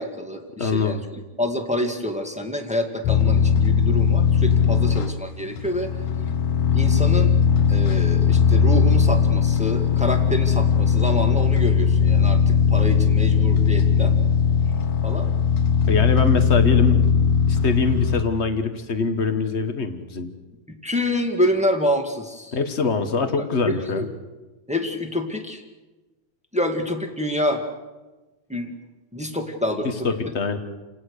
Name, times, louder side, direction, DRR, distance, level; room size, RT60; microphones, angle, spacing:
voice 1, 0.0-5.9 6.7-7.4 7.7-14.1 15.0-15.3 20.7-22.6 23.4-24.0 24.7-25.6 26.5-27.6 28.5-28.7 29.1-30.1, left 1 dB, 5° right, 4 dB, 1.1 m, -27 dB
voice 2, 0.6-1.0 15.9-20.3 22.5-24.1 29.8-30.6, left 4 dB, 50° left, 7 dB, 0.7 m, -24 dB
sound 1, 3.0-18.2, left 6 dB, 70° left, 2.4 m, -19 dB
29.5 x 18.5 x 6.6 m, 1.2 s
omnidirectional pair, 3.4 m